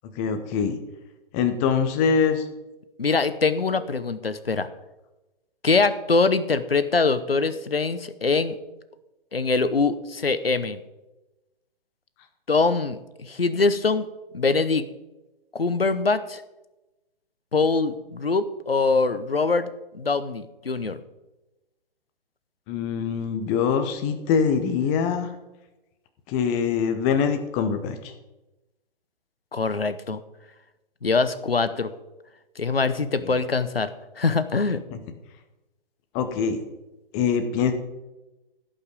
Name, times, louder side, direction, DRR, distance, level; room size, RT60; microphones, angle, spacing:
voice 1, 0.2-0.8 1.3-2.4 22.7-25.3 26.3-28.1 33.2-33.4 34.9-35.0 36.1-36.6 37.1-37.7, left 6 dB, 15° left, 8 dB, 0.7 m, -24 dB
voice 2, 3.0-4.7 5.6-8.5 9.3-10.8 12.5-14.1 14.3-14.9 15.5-16.4 17.5-19.7 19.9-21.0 29.5-30.2 31.0-31.9 32.6-33.9 34.2-34.8, left 4 dB, 80° left, 13 dB, 0.9 m, -23 dB
16.0 x 5.6 x 5.2 m, 1.0 s
figure-of-eight pair, 130°, 29 cm